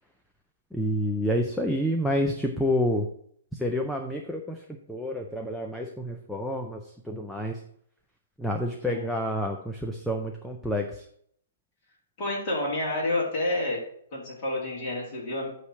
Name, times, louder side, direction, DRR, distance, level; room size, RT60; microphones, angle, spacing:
voice 1, 0.7-3.1 3.6-4.6 4.9-6.8 7.1-7.5 8.4-10.8, equal, ahead, 2 dB, 0.4 m, -28 dB
voice 2, 8.9-9.2 12.2-13.8 14.1-15.5, left 2 dB, 20° left, -5 dB, 2.4 m, -29 dB
8.4 x 3.2 x 6.1 m, 0.65 s
hypercardioid pair, 180°, 0 cm